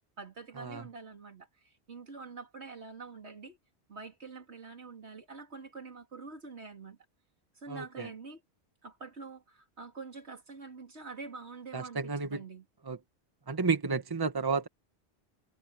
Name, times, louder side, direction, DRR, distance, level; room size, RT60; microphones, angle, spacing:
voice 1, 0.2-3.6 3.9-7.0 7.5-8.4 8.8-12.7, right 4 dB, 80° right, 3.2 m, -46 dB
voice 2, 7.7-8.1 11.7-12.4 12.9-13.0 13.5-14.7, right 4 dB, 20° right, 1.2 m, -31 dB
omnidirectional pair, 1.1 m